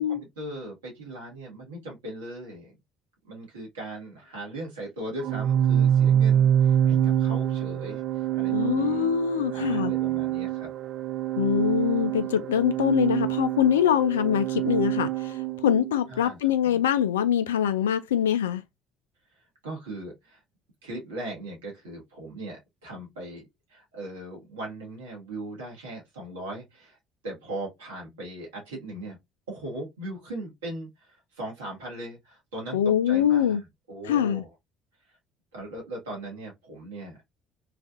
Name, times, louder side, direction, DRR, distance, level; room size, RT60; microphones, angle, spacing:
voice 1, 0.0-2.7 3.2-9.1 9.5-10.7 16.1-16.8 19.3-20.4 20.8-23.4 23.7-27.0 27.2-29.2 29.5-34.5 35.5-37.2, right 1 dB, 85° right, 1.3 m, -39 dB
Organ, 5.2-16.0, right 10 dB, 60° right, 0.3 m, -25 dB
voice 2, 8.5-9.9 11.4-15.1 15.6-18.6 32.7-33.6 34.1-34.4, left 9 dB, 85° left, 0.3 m, -23 dB
3.2 x 2.4 x 2.4 m
hypercardioid pair, 60°, 0 cm